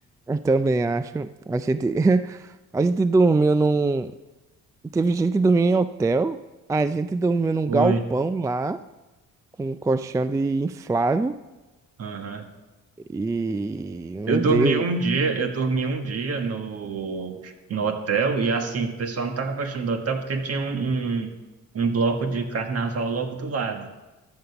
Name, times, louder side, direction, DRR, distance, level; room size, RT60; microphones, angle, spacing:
voice 1, 0.3-4.1 4.9-6.4 6.7-8.8 9.6-11.4 13.1-14.8, right 3 dB, 10° right, 13 dB, 0.3 m, -23 dB
voice 2, 7.7-8.0 12.0-12.5 14.3-21.3 21.7-23.9, right 4 dB, 55° right, 6 dB, 1.6 m, -26 dB
13.0 x 7.0 x 6.8 m, 1.1 s
cardioid pair, 90°, 30 cm